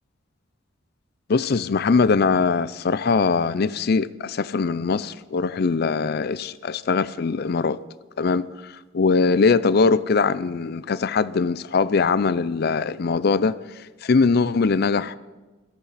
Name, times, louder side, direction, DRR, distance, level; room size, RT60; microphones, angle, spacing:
voice 1, 1.3-7.8 8.2-8.5 8.9-13.6 14.0-15.2, left 4 dB, 50° left, 17 dB, 0.4 m, -21 dB
17.5 x 14.5 x 4.1 m, 1.2 s
head